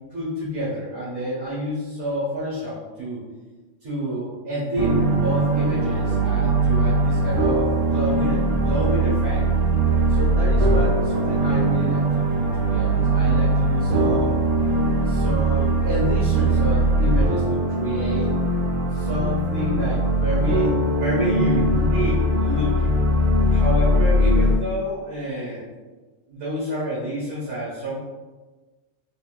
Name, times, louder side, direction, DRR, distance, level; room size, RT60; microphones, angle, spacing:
voice 1, 0.1-3.2 3.8-9.5 10.1-14.4 15.0-18.4 18.9-23.0 23.5-25.6 26.3-28.1, equal, 55° right, -10 dB, 1.6 m, -29 dB
sound 1, 4.8-24.5, right 1 dB, 90° right, 0.3 m, -20 dB
4.1 x 3.1 x 2.3 m, 1.3 s
omnidirectional pair, 1.3 m